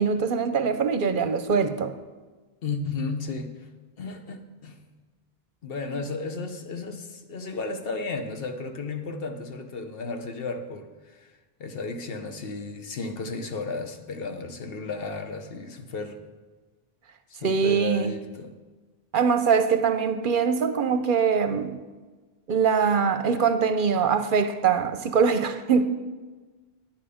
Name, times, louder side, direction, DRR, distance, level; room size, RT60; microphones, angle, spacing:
voice 1, 0.0-1.9 17.4-18.1 19.1-21.8 22.5-25.8, right 6 dB, 60° right, 0.7 m, -23 dB
voice 2, 2.6-3.5 4.0-4.8 5.6-11.2 11.6-16.2 17.3-18.6, left 3 dB, 70° left, 1.1 m, -34 dB
10.0 x 9.1 x 5.0 m
omnidirectional pair, 1.0 m